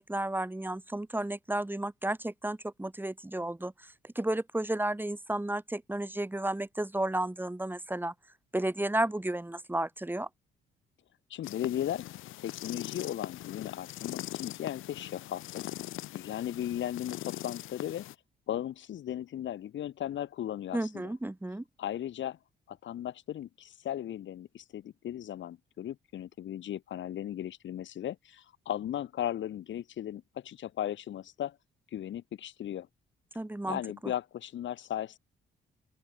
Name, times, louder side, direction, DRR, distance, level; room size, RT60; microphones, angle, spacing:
voice 1, 0.0-8.1 8.5-10.3 20.7-21.6 33.4-34.1, right 1 dB, 10° right, 5.1 m, -33 dB
voice 2, 11.3-12.1 12.4-15.6 16.1-18.0 18.5-21.0 21.8-22.4 22.7-31.6 31.9-32.9 33.7-35.2, left 11 dB, 70° left, 3.5 m, -36 dB
sound 1, 11.4-18.1, left 15 dB, 90° left, 2.4 m, -41 dB
open air
cardioid pair, 90°, 20 cm